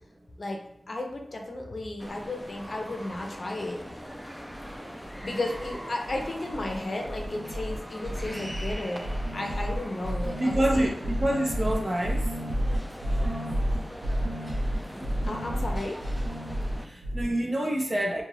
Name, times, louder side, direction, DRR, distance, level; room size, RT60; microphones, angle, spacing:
voice 1, 0.9-3.8 5.2-9.0 9.3-11.1 15.2-16.0, left 2 dB, 55° left, 2 dB, 0.5 m, -34 dB
sound 1, 2.0-16.9, equal, ahead, 0.3 m, -41 dB
sound 2, 4.5-4.8 5.0-5.8 6.0-6.8 7.0-17.3, equal, 85° right, 0.4 m, -31 dB
voice 2, 10.4-12.3 16.8-18.2, right 1 dB, 40° right, 1 dB, 0.7 m, -27 dB
2.5 x 2.3 x 3.2 m, 0.75 s
cardioid pair, 55°, 0 cm